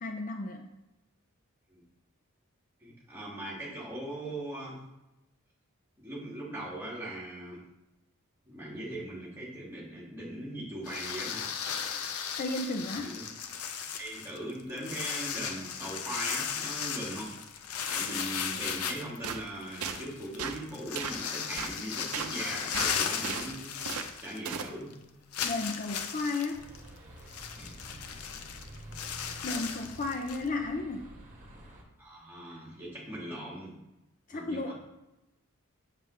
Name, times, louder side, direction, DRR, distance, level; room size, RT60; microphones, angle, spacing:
voice 1, 0.0-0.6 12.4-13.1 25.4-26.7 29.4-31.1 34.3-34.7, left 2 dB, 35° left, 3 dB, 0.5 m, -33 dB
voice 2, 2.8-4.8 6.0-7.6 8.4-11.5 12.9-13.2 14.0-17.3 17.9-23.8 24.2-24.9 27.6-27.8 32.0-33.7 34.3-34.7, right 1 dB, 10° right, -6 dB, 2.1 m, -40 dB
sound 1, 10.8-24.6 24.9-25.0 25.3-30.5, left 7 dB, 90° left, 0.6 m, -36 dB
sound 2, 19.2-19.4 19.8-20.0 20.4-20.6 20.9-21.2 21.6-21.7 22.1-22.3 22.7-23.5 23.8-24.1 24.4-24.7, right 6 dB, 85° right, 0.6 m, -35 dB
sound 3, 26.5-31.8, equal, 35° right, 1.5 m, -49 dB
7.3 x 6.7 x 3.2 m, 0.95 s
head